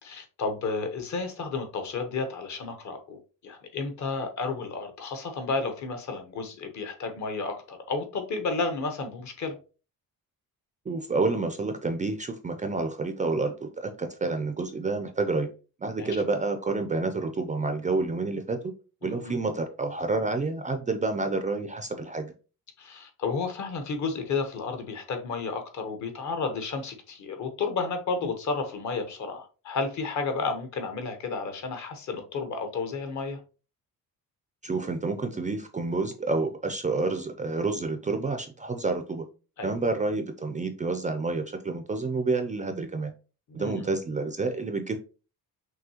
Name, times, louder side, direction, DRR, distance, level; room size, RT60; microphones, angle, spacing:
voice 1, 0.0-9.6 16.0-16.2 19.0-19.4 22.8-33.4 39.6-39.7 43.5-43.9, left 4 dB, 50° left, 1.0 m, -32 dB
voice 2, 10.9-15.5 15.8-18.6 19.0-22.3 34.6-39.3 39.6-43.1 43.5-45.0, right 3 dB, 20° right, 0.4 m, -29 dB
6.1 x 2.7 x 2.8 m
cardioid pair, 140°, 36 cm